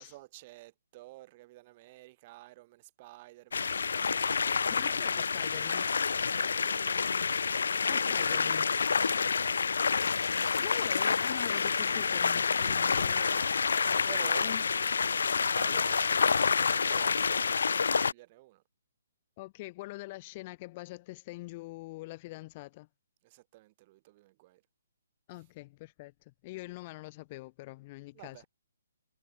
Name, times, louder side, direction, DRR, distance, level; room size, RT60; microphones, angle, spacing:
voice 1, 0.0-4.8 6.2-7.1 12.6-14.5 15.2-16.6 16.8-17.6 17.8-18.6 23.2-24.6 25.3-25.4 28.1-28.5, right 18 dB, 30° right, 4.2 m, -52 dB
sound 1, 3.5-18.1, left 5 dB, 75° left, 0.4 m, -28 dB
voice 2, 4.7-5.9 7.9-8.7 10.6-13.2 14.4-14.6 19.4-22.9 25.3-28.4, left 21 dB, 30° left, 0.7 m, -44 dB
hypercardioid pair, 155°, 0 cm